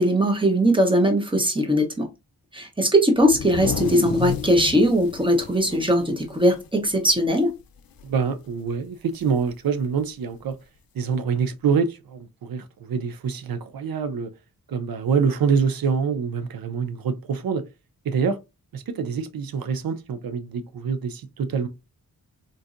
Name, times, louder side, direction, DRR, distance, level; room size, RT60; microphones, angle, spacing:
voice 1, 0.0-2.1 2.5-7.5, equal, 15° right, 0.8 m, -20 dB
sound 1, 3.2-6.9 7.3-7.4 7.8-8.2 9.4-9.5 10.5-10.6, left 8 dB, 75° left, 0.5 m, -32 dB
voice 2, 8.0-10.6 10.9-14.3 14.7-17.6 18.0-18.4 18.7-21.7, right 6 dB, 75° right, 0.6 m, -25 dB
3.9 x 2.6 x 2.4 m
wide cardioid pair, 95°, 36 cm